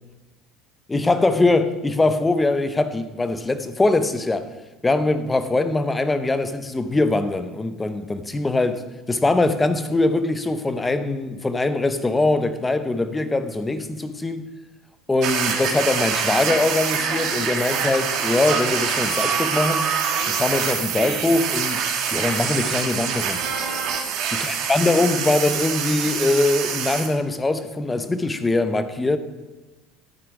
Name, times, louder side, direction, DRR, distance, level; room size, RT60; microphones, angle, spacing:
voice 1, 0.9-4.5 4.8-14.5 15.1-19.9 20.3-21.8 22.1-23.4 24.5-29.2, left 2 dB, 10° left, 0.7 m, -22 dB
sound 1, 15.2-27.1, right 6 dB, 55° right, 1.7 m, -25 dB
11.0 x 8.5 x 4.8 m
cardioid pair, 135°, 0 cm